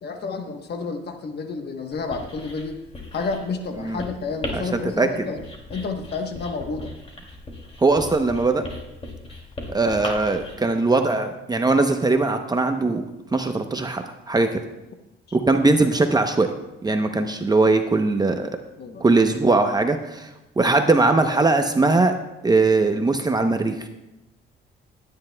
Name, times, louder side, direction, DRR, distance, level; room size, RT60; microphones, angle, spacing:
voice 1, 0.0-2.8 3.1-5.4 5.7-6.9 15.3-15.4 18.8-19.0, left 4 dB, 55° left, 5 dB, 1.1 m, -30 dB
Writing, 1.9-10.5, left 2 dB, 30° left, 2.6 m, -37 dB
voice 2, 7.8-8.6 9.7-13.0 13.3-14.6 15.3-16.5 16.8-18.5 19.0-20.3 20.6-22.1 22.4-23.9, right 3 dB, 20° right, 6 dB, 0.8 m, -20 dB
19.5 x 9.8 x 2.2 m, 0.96 s
cardioid pair, 90°, 20 cm